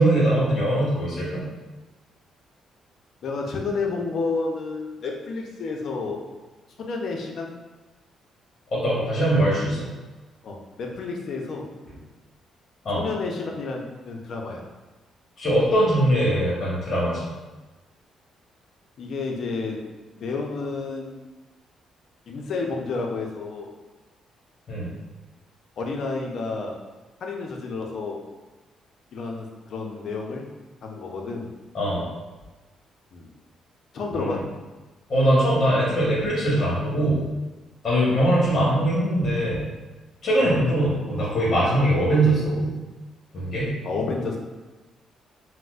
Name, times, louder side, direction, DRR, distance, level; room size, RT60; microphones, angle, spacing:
voice 1, 0.0-1.4 8.7-9.9 12.8-13.0 15.4-17.3 24.7-24.9 31.7-32.0 34.1-34.4 35.1-37.3 37.8-39.7 40.2-42.7 43.3-43.7, right 1 dB, 40° left, -7 dB, 1.1 m, -21 dB
voice 2, 3.2-6.2 6.8-7.6 10.4-11.7 13.0-14.7 19.0-19.8 20.2-21.1 22.3-23.7 25.8-26.8 27.2-28.2 29.1-30.5 30.8-31.5 33.1-33.3 33.9-34.5 38.0-38.2 40.4-40.6 43.8-44.4, left 3 dB, 65° left, 1 dB, 0.5 m, -30 dB
4.2 x 2.1 x 2.4 m, 1.2 s
cardioid pair, 90°, 0 cm